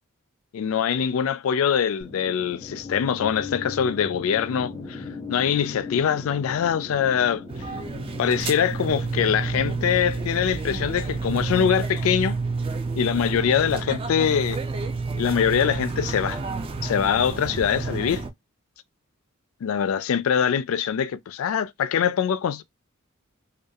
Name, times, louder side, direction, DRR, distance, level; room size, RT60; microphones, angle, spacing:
voice 1, 0.5-5.0 5.3-7.4 8.2-12.4 13.0-14.6 15.2-16.4 16.8-18.3 19.6-22.6, left 8 dB, 70° left, 0.3 m, -23 dB
sound 1, 2.0-14.1, left 4 dB, 20° left, 0.6 m, -40 dB
sound 2, 7.5-18.3, right 3 dB, 25° right, 0.3 m, -29 dB
2.4 x 2.2 x 2.6 m
head